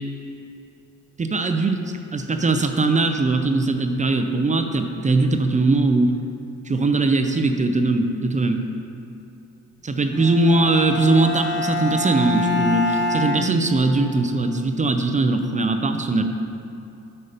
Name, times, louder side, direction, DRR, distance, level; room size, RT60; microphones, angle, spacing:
voice 1, 1.2-6.1 6.7-8.6 9.8-16.2, right 3 dB, 25° right, 6 dB, 0.6 m, -20 dB
Bowed string instrument, 10.1-14.2, left 2 dB, 35° left, 1.1 m, -26 dB
8.5 x 5.5 x 5.1 m, 2.7 s
cardioid pair, 90°, 30 cm